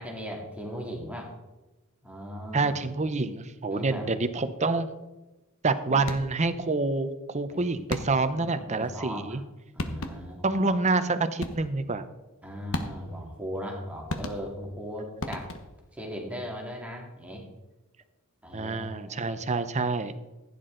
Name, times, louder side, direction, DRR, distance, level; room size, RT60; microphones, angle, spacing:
voice 1, 0.0-1.3 2.0-2.8 3.7-4.1 5.8-6.0 7.5-7.6 8.1-9.4 9.7-10.6 12.4-15.5 15.9-17.4 18.4-19.5, equal, 5° right, -1 dB, 2.2 m, -38 dB
voice 2, 2.5-4.9 5.6-9.4 10.4-12.0 18.5-20.1, right 3 dB, 30° right, 11 dB, 0.8 m, -27 dB
sound 1, 6.0-6.5 7.9-8.4 9.4-9.5 9.8-10.4 11.4-11.9 12.7-13.3 14.1-14.8 15.2-15.9, left 2 dB, 65° left, 1.1 m, -35 dB
15.5 x 9.7 x 3.9 m, 1.1 s
head